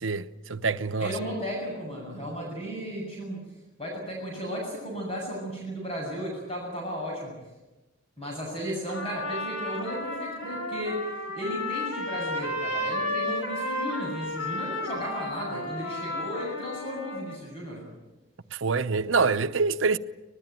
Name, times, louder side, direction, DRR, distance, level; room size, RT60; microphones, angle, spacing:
voice 1, 0.0-1.1 18.6-20.0, right 4 dB, 80° right, 0.9 m, -25 dB
voice 2, 1.0-3.4 3.8-7.4 8.2-17.9, equal, 30° left, 7.6 m, -34 dB
Trumpet, 8.9-17.4, left 1 dB, 80° left, 6.2 m, -33 dB
24.5 x 20.0 x 9.2 m
head